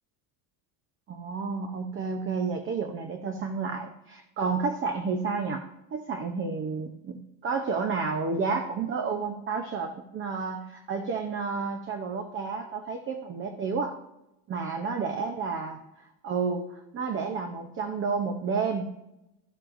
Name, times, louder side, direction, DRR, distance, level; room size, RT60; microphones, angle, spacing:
voice 1, 1.1-5.6 5.9-14.0 14.5-15.8 16.2-18.9, right 5 dB, 25° right, 6 dB, 0.6 m, -31 dB
13.5 x 7.3 x 2.5 m, 0.89 s
supercardioid pair, 130°, 49 cm